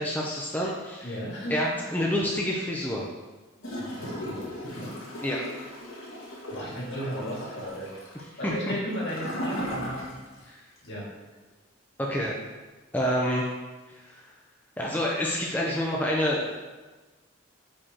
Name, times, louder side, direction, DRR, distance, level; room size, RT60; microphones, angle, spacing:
voice 1, 0.0-1.1 1.5-3.1 5.2-5.4 8.4-8.7 10.5-10.6 12.0-12.4 12.9-13.5 13.9-14.3 14.8-16.6, equal, 10° left, -3 dB, 0.6 m, -28 dB
voice 2, 1.0-1.6 3.8-5.0 6.5-7.9 8.4-10.5 10.8-11.1, equal, 60° left, -5 dB, 2.1 m, -35 dB
Gurgling / Toilet flush, 3.6-10.5 10.8-10.9, equal, 90° left, 1.8 m, -37 dB
9.2 x 4.9 x 2.9 m, 1.3 s
head